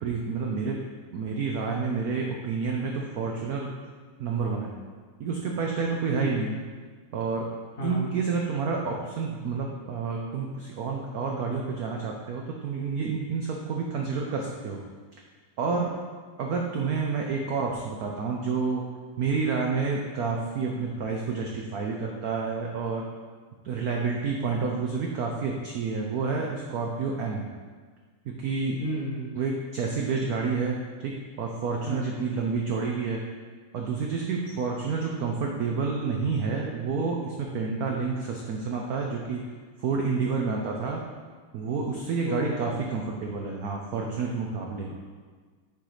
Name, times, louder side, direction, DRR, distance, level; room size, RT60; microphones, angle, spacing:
voice 1, 0.0-0.8 1.1-3.7 4.2-4.8 5.2-6.6 7.1-7.5 7.8-14.8 15.6-15.9 16.4-18.9 19.2-23.0 23.6-27.5 28.2-28.8 29.4-33.2 33.7-39.4 39.8-41.0 41.5-44.9, right 4 dB, 80° right, 0 dB, 0.8 m, -29 dB
voice 2, 7.8-8.1 28.8-29.3 31.8-32.2 42.2-42.6 44.9-45.0, equal, 45° left, -4 dB, 1.4 m, -32 dB
7.1 x 3.9 x 4.9 m, 1.5 s
omnidirectional pair, 2.3 m